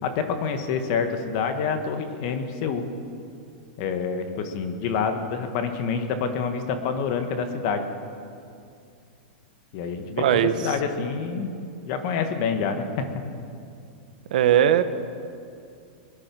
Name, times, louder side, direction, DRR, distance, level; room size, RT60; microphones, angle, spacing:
voice 1, 0.0-2.8 3.8-7.9 9.7-11.5 11.8-13.0, left 6 dB, 40° left, 7 dB, 1.5 m, -27 dB
voice 2, 10.2-10.7 14.3-14.8, right 10 dB, 65° right, 11 dB, 1.0 m, -19 dB
22.0 x 10.5 x 6.1 m, 2.5 s
supercardioid pair, 165°, 5 cm